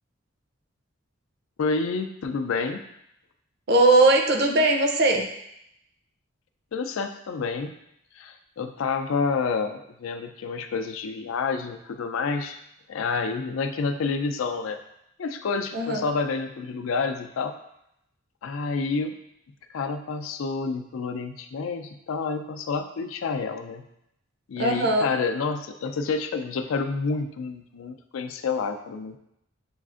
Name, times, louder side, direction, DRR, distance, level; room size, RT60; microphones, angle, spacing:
voice 1, 1.6-2.8 6.7-7.7 8.2-12.6 12.9-14.8 15.2-17.5 18.4-19.2 19.7-23.9 24.5-29.2, left 4 dB, 85° left, 8 dB, 0.4 m, -29 dB
voice 2, 3.7-5.3 15.7-16.1 24.6-25.1, right 2 dB, 55° right, 3 dB, 0.5 m, -20 dB
7.0 x 2.4 x 2.4 m, 0.79 s
head